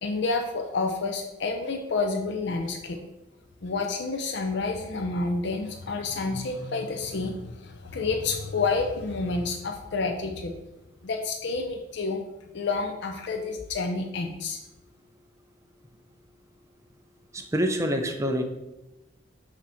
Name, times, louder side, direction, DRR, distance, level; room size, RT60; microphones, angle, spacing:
voice 1, 0.0-3.0 3.6-10.5 11.0-12.2 12.5-14.6, left 3 dB, 65° left, 3 dB, 0.5 m, -29 dB
voice 2, 17.3-18.4, equal, 15° right, 4 dB, 0.5 m, -26 dB
6.0 x 2.8 x 5.6 m, 0.98 s
head